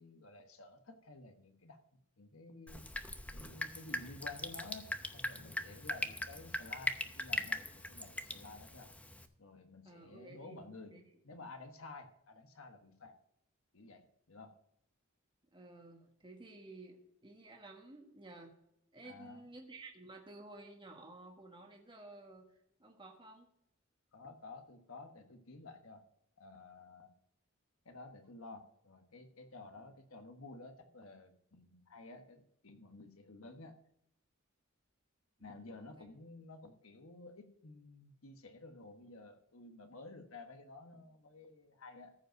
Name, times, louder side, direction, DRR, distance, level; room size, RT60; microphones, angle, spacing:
voice 1, 0.0-1.8 2.2-2.8 3.3-8.9 9.4-10.9 11.2-13.2 13.7-14.6 19.0-19.4 24.1-26.0 26.4-27.1 27.8-33.8 35.4-42.1, left 3 dB, 70° left, 6 dB, 1.3 m, -52 dB
Drip, 2.7-9.3, left 1 dB, 5° left, 0.7 m, -41 dB
voice 2, 9.8-11.0 15.5-18.5 18.9-22.5 22.8-23.5 29.6-30.0 35.4-36.0, right 2 dB, 25° right, 2 dB, 1.4 m, -54 dB
14.5 x 5.4 x 6.4 m, 0.78 s
head